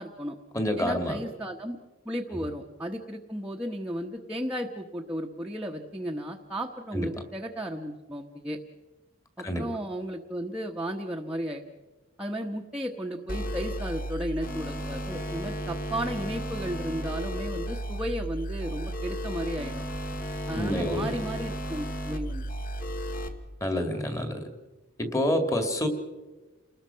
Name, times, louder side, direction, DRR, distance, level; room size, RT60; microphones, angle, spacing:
voice 1, 0.0-0.4 0.8-1.8 2.0-8.6 9.4-11.6 12.2-19.8 20.5-22.4, equal, 5° right, -1 dB, 1.1 m, -34 dB
voice 2, 0.5-1.2 2.3-2.4 6.9-7.1 9.4-9.6 20.5-21.1 23.6-24.5 25.0-25.9, left 1 dB, 15° left, 6 dB, 2.1 m, -28 dB
sound 1, 13.3-23.3, right 1 dB, 40° left, 2.0 m, -34 dB
29.5 x 20.0 x 5.7 m, 1.2 s
head